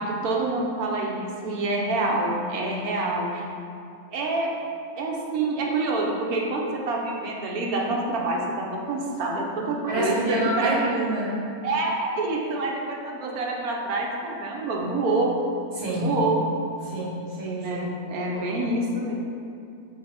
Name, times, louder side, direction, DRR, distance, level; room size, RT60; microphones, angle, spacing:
voice 1, 0.0-3.4 4.1-4.5 5.0-10.7 11.6-15.4 16.0-16.4 17.6-19.1, right 2 dB, 80° right, -1 dB, 1.3 m, -27 dB
voice 2, 9.9-11.4 15.8-16.2 16.8-17.8 18.3-18.5, right 1 dB, 45° right, -5 dB, 1.4 m, -27 dB
7.9 x 4.0 x 3.4 m, 2.6 s
omnidirectional pair, 1.5 m